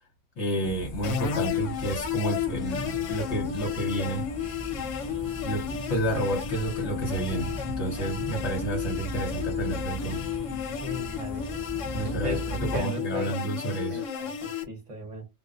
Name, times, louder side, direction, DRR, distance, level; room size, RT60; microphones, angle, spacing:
voice 1, 0.4-4.3 5.4-10.2 11.9-14.0, right 2 dB, 65° left, 1.1 m, -30 dB
sound 1, 0.6-12.8, right 1 dB, 40° left, 0.4 m, -38 dB
sound 2, 1.0-14.6, left 9 dB, 80° left, 0.9 m, -32 dB
voice 2, 10.8-11.5 12.0-13.4 13.9-15.3, left 1 dB, 40° right, 0.8 m, -37 dB
2.3 x 2.2 x 2.4 m
omnidirectional pair, 1.3 m